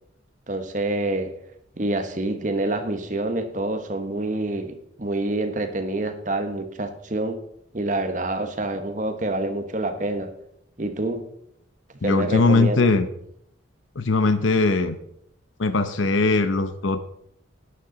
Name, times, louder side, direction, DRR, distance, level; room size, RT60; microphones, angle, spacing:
voice 1, 0.5-1.3 1.8-7.4 7.7-10.3 10.8-11.3 12.0-12.9, right 2 dB, 40° right, 8 dB, 1.1 m, -27 dB
voice 2, 12.0-13.1 14.0-15.0 15.6-17.0, left 3 dB, 85° left, 10 dB, 0.8 m, -20 dB
13.0 x 9.6 x 3.9 m, 0.73 s
head